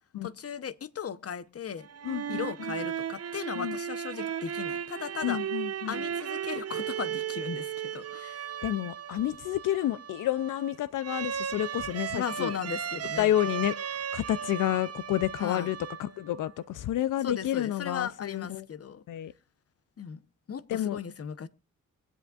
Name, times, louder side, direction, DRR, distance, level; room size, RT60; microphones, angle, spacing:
voice 1, 0.2-1.9 2.3-5.4 5.9-8.5 12.1-13.3 15.4-15.7 17.2-19.0 20.0-20.2 20.5-21.5, left 7 dB, 50° left, 0.8 m, -37 dB
sound 1, 1.8-16.4, right 8 dB, 55° right, 0.8 m, -36 dB
voice 2, 2.0-2.4 3.6-3.8 5.2-5.9 8.6-12.5 13.2-18.6 19.1-19.3 20.7-21.0, left 13 dB, 85° left, 0.5 m, -30 dB
24.0 x 8.1 x 2.4 m
cardioid pair, 70°, 30 cm